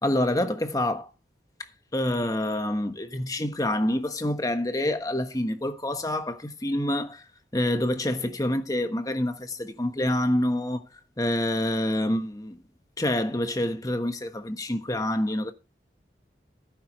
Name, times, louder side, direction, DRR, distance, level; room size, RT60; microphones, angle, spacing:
voice 1, 0.0-1.1 1.9-7.2 7.5-10.8 11.2-12.6 13.0-15.5, left 1 dB, 20° left, 1.3 m, -27 dB
16.5 x 9.5 x 3.2 m
head